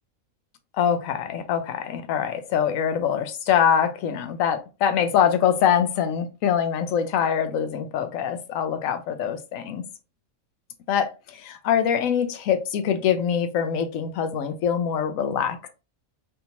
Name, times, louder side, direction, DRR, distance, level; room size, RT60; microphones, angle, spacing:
voice 1, 0.7-9.8 10.9-15.7, left 8 dB, 75° left, 1.0 m, -24 dB
3.4 x 2.8 x 2.7 m
omnidirectional pair, 1.4 m